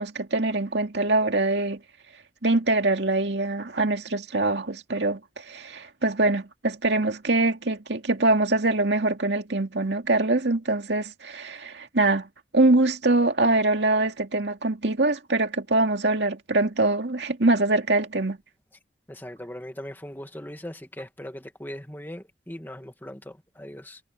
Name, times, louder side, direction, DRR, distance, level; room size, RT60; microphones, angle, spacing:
voice 1, 0.0-1.8 2.4-12.3 12.5-18.4, right 2 dB, 75° right, 2.3 m, -23 dB
voice 2, 19.1-24.0, left 1 dB, 10° left, 1.9 m, -39 dB
head